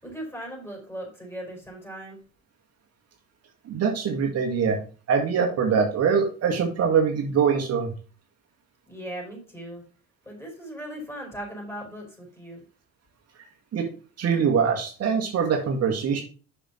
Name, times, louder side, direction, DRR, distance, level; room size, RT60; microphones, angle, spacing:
voice 1, 0.0-2.2 8.9-9.8 10.2-12.6, equal, 10° left, 0 dB, 5.1 m, -38 dB
voice 2, 3.7-4.8 5.1-7.9 13.7-13.9 14.2-16.2, right 6 dB, 55° right, 2 dB, 1.8 m, -23 dB
6.9 x 6.1 x 5.7 m, 0.38 s
cardioid pair, 105°, 30 cm